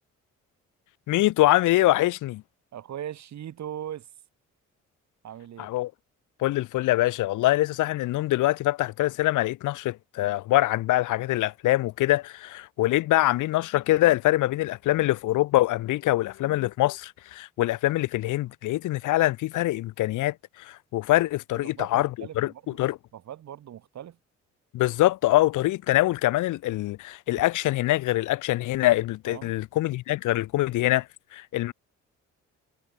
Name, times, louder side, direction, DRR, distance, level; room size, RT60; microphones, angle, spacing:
voice 1, 1.1-2.4 5.6-5.9 6.4-23.0 24.7-31.1 31.3-31.7, left 16 dB, 90° left, 1.5 m, -24 dB
voice 2, 2.7-4.1 5.2-5.7 21.6-22.8 23.1-24.2 27.3-27.4 29.3-29.6, right 10 dB, 65° right, 2.6 m, -39 dB
cardioid pair, 90°, 30 cm